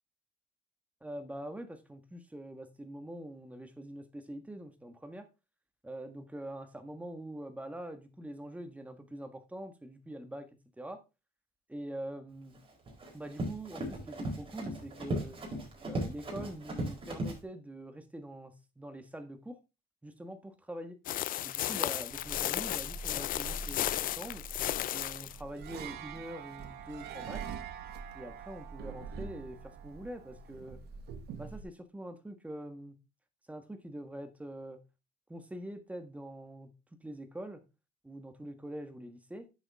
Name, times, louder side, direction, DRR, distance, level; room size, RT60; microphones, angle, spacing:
voice 1, 1.0-5.3 5.8-10.5 10.8-11.0 11.7-12.6 13.1-15.4 15.9-19.6 20.0-21.0 21.4-24.4 24.9-27.4 28.1-30.8 31.4-33.0 33.5-34.8 35.3-36.7 37.0-37.6 38.0-39.5, right 1 dB, 10° right, 1.6 m, -44 dB
Run, 12.5-17.4, right 1 dB, 30° right, 4.5 m, -37 dB
sound 1, 21.1-25.4, left 13 dB, 55° left, 0.4 m, -34 dB
sound 2, 22.1-31.6, right 5 dB, 75° right, 1.5 m, -44 dB
9.8 x 7.3 x 3.6 m
cardioid pair, 110°, 17 cm